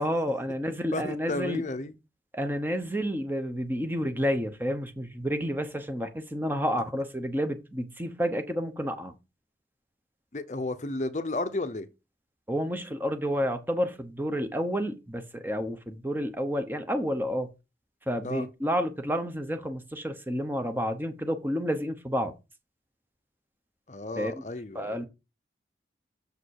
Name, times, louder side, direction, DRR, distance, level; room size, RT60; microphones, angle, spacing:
voice 1, 0.0-1.6 2.3-9.1 12.5-17.5 18.1-22.3 24.2-24.4 24.7-25.1, equal, 10° right, 0.9 m, -30 dB
voice 2, 0.9-1.9 10.3-11.9 18.2-18.5 23.9-25.1, left 2 dB, 40° left, 0.7 m, -33 dB
6.7 x 5.1 x 6.4 m
head